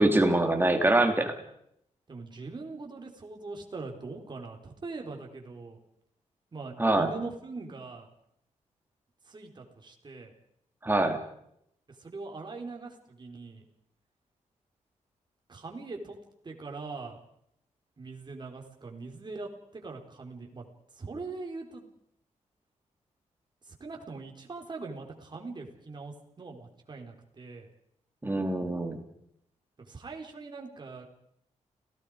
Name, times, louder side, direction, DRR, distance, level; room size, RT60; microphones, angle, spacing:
voice 1, 0.0-1.3 6.8-7.1 10.8-11.2 28.2-29.0, right 2 dB, 15° right, 4 dB, 3.3 m, -24 dB
voice 2, 2.1-5.8 6.5-8.1 9.2-10.3 11.9-13.6 15.5-16.2 16.4-17.2 18.0-20.6 20.9-21.8 23.7-27.7 29.8-31.1, right 3 dB, 35° right, 2 dB, 4.4 m, -42 dB
30.0 x 18.5 x 5.2 m, 0.74 s
wide cardioid pair, 110°, 13 cm